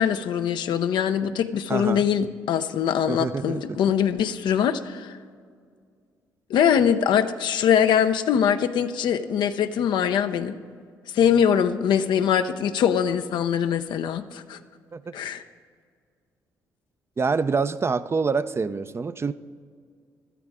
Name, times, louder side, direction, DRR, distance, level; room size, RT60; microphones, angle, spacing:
voice 1, 0.0-5.1 6.5-10.6 11.1-14.6 15.1-15.4, left 8 dB, 70° left, 9 dB, 0.6 m, -22 dB
voice 2, 1.7-2.1 3.1-3.8 14.9-15.2 17.2-19.3, right 4 dB, 35° right, 13 dB, 0.5 m, -26 dB
15.0 x 12.5 x 3.6 m, 2.1 s
supercardioid pair, 60°, 8 cm